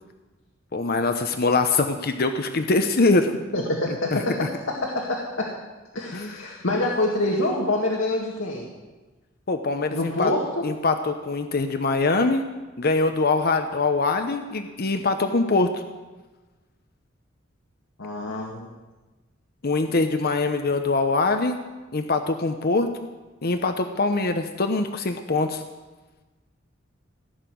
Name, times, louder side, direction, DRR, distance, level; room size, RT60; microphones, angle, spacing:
voice 1, 0.7-3.3 4.1-4.5 6.1-6.3 9.5-10.3 10.6-12.4 12.8-15.8 19.6-21.6 21.9-22.9 23.4-25.6, left 3 dB, 50° left, 7 dB, 0.8 m, -23 dB
voice 2, 3.5-4.5 4.8-5.5 5.9-8.7 9.9-10.7 18.0-18.7, left 2 dB, 80° left, -2 dB, 2.0 m, -26 dB
16.5 x 6.6 x 9.3 m, 1.2 s
head